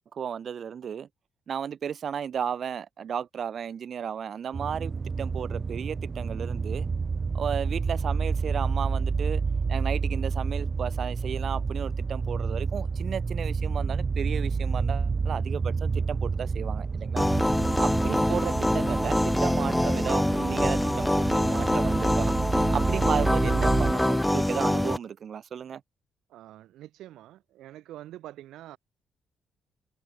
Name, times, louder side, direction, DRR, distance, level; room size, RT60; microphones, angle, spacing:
voice 1, 0.1-1.1 1.5-6.9 7.3-9.4 9.7-17.3 17.8-22.3 22.7-25.8, right 8 dB, 55° right, 1.8 m, -34 dB
sound 1, 4.5-23.9, right 5 dB, 35° right, 1.5 m, -29 dB
sound 2, 17.2-25.0, left 1 dB, 5° left, 1.0 m, -25 dB
voice 2, 26.3-28.8, right 14 dB, 85° right, 1.0 m, -45 dB
cardioid pair, 90°, 0 cm